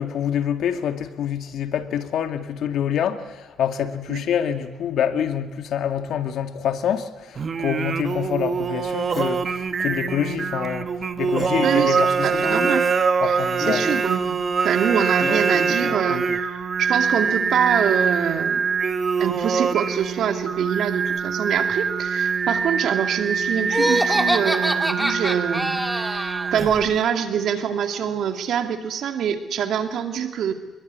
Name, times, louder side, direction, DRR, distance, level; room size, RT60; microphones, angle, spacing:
voice 1, 0.0-10.9 11.2-12.5 13.2-13.8, left 9 dB, 75° left, 2.1 m, -26 dB
Singing, 7.3-27.0, right 5 dB, 45° right, 1.6 m, -24 dB
sound 1, 9.1-9.4 10.5-10.7 12.4-13.0 13.6-14.1 15.2-16.4, left 5 dB, 45° left, 1.7 m, -32 dB
voice 2, 11.6-12.8 13.2-18.7 19.2-30.5, right 8 dB, 70° right, 2.4 m, -25 dB
Laughter, 23.7-26.5, equal, ahead, 2.2 m, -24 dB
26.0 x 21.5 x 9.5 m
cardioid pair, 90°, 0 cm